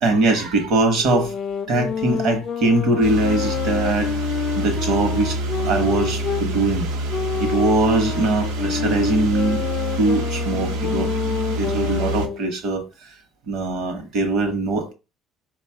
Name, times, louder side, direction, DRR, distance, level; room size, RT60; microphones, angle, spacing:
voice 1, 0.0-1.3 1.7-4.2 4.6-5.4 5.6-6.9 7.4-9.6 10.0-11.1 11.6-13.1 13.5-14.9, right 2 dB, 50° right, 1.0 m, -21 dB
sound 1, 1.0-6.5 7.1-12.4, left 7 dB, 35° left, 0.4 m, -28 dB
sound 2, 3.0-12.3, right 1 dB, 80° right, 0.9 m, -27 dB
4.1 x 2.4 x 4.4 m
cardioid pair, 175°, 0 cm